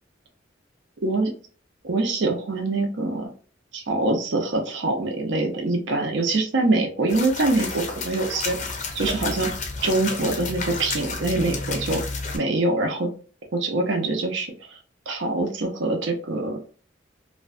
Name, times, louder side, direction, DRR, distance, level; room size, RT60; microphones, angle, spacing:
voice 1, 1.0-1.3 1.8-3.3 3.7-8.6 8.9-9.5 9.8-12.0 12.3-13.1 13.5-14.5 15.1-16.6, right 2 dB, 75° right, 3 dB, 0.6 m, -24 dB
sound 1, 7.1-12.4, left 3 dB, 40° left, 0.5 m, -31 dB
2.5 x 2.1 x 2.4 m, 0.40 s
head